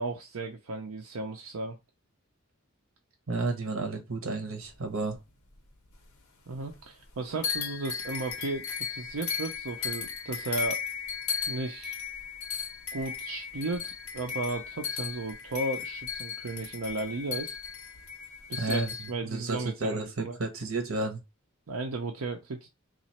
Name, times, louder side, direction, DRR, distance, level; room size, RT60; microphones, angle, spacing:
voice 1, 0.0-1.8 6.5-10.8 11.5-12.0 12.9-17.6 18.5-20.4 21.7-22.7, right 3 dB, 90° right, 0.6 m, -35 dB
voice 2, 3.3-5.2 18.6-21.2, right 3 dB, 70° right, 1.0 m, -32 dB
sound 1, 4.6-6.2 6.5-7.1 7.4-19.1, left 7 dB, 85° left, 0.9 m, -36 dB
3.0 x 2.5 x 4.2 m
head